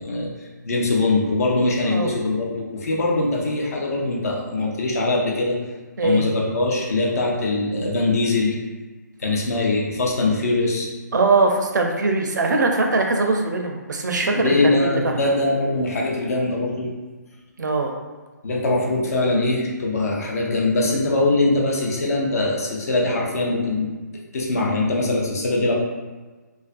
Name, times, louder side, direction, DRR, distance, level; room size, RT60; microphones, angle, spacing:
voice 1, 0.0-5.6 6.0-8.6 9.2-10.9 14.3-16.9 18.4-23.9 24.3-25.7, left 2 dB, 55° left, -2 dB, 0.6 m, -22 dB
voice 2, 11.1-15.0 17.6-17.9, right 3 dB, 70° right, 2 dB, 0.4 m, -21 dB
2.4 x 2.2 x 2.4 m, 1.3 s
figure-of-eight pair, 145°, 10 cm